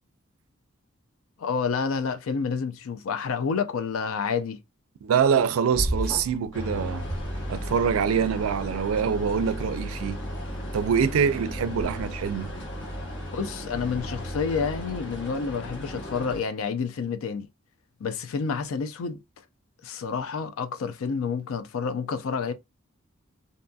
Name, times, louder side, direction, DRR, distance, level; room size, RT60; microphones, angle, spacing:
voice 1, 1.4-4.6 13.3-17.5 18.0-19.2 19.8-22.5, left 5 dB, 80° left, 0.4 m, -29 dB
voice 2, 5.0-7.1 7.5-10.2 10.7-12.5, right 7 dB, 85° right, 0.4 m, -25 dB
sound 1, 5.7-6.5 7.0-7.9, equal, 5° left, 0.8 m, -31 dB
sound 2, 6.5-16.4, equal, 60° left, 1.1 m, -35 dB
2.6 x 2.6 x 2.2 m
head